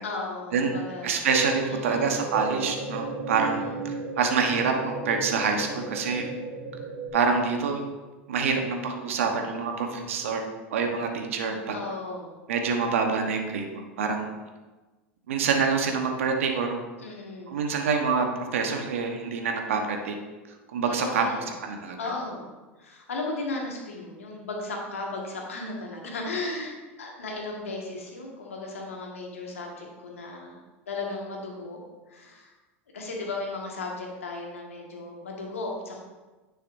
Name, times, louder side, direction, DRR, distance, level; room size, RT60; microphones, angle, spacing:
voice 1, 0.0-1.2 1.6-2.2 3.4-4.0 11.7-12.4 17.0-17.7 20.9-21.5 22.0-22.5 22.8-30.6 30.9-31.8 32.1-32.5 32.9-36.0, left 3 dB, 85° left, -1 dB, 1.7 m, -35 dB
voice 2, 1.0-6.3 7.1-7.8 8.3-10.4 10.7-11.8 12.5-14.3 15.3-16.8 17.5-18.3 18.5-20.2 20.7-21.2 21.6-22.0, right 5 dB, 80° right, 3 dB, 1.1 m, -26 dB
sound 1, 1.3-7.1, right 2 dB, 30° right, 2.1 m, -34 dB
9.7 x 6.3 x 2.6 m, 1.2 s
hypercardioid pair, 90°, 7 cm